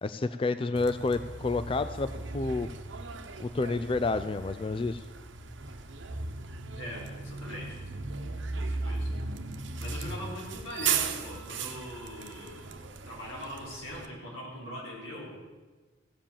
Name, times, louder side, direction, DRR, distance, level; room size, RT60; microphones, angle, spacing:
voice 1, 0.0-2.7 3.4-5.0, left 3 dB, 25° left, 12 dB, 0.3 m, -29 dB
Bus, 0.8-14.1, right 4 dB, 70° right, 1.0 m, -37 dB
voice 2, 6.8-7.8 8.5-9.1 9.8-15.4, equal, 90° left, -3 dB, 4.7 m, -41 dB
16.0 x 7.6 x 7.2 m, 1.3 s
head